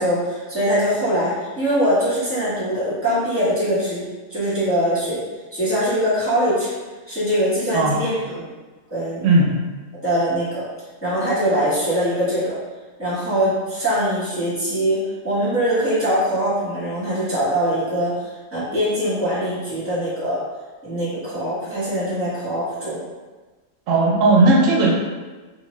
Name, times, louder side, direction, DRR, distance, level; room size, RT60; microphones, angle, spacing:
voice 1, 0.0-5.2 5.5-6.7 7.1-8.4 8.9-9.2 10.0-10.7 11.0-12.6 13.0-20.4 20.8-23.0, equal, 10° right, -10 dB, 1.2 m, -22 dB
voice 2, 9.2-9.6 23.9-24.9, right 2 dB, 85° right, -2 dB, 1.0 m, -16 dB
2.7 x 2.5 x 3.1 m, 1.3 s
omnidirectional pair, 1.3 m